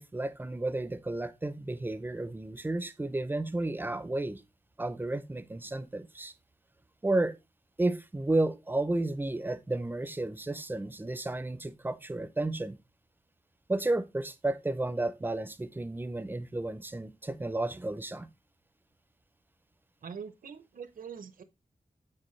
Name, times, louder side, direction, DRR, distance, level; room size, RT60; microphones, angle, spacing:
voice 1, 0.0-4.4 4.8-6.3 7.0-7.4 7.8-12.8 13.7-18.3, right 2 dB, 15° right, 0.5 m, -32 dB
voice 2, 20.0-21.4, right 6 dB, 70° right, 0.7 m, -43 dB
7.6 x 4.4 x 3.1 m
wide cardioid pair, 145°, 15 cm